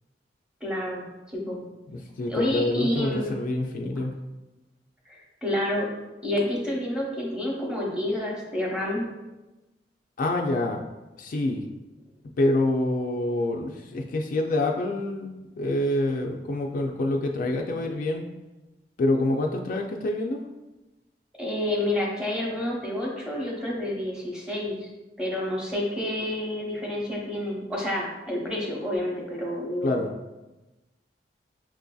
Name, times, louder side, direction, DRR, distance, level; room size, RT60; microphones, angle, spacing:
voice 1, 0.6-1.6 2.3-3.3 5.1-5.9 6.2-9.1 21.4-24.9 25.2-30.0, left 1 dB, 5° right, -4 dB, 0.8 m, -29 dB
voice 2, 1.9-4.1 10.2-10.8 11.2-11.7 12.4-18.2 19.0-20.4 29.8-30.1, left 1 dB, 50° left, 1 dB, 0.3 m, -26 dB
6.1 x 2.6 x 2.3 m, 1.1 s
head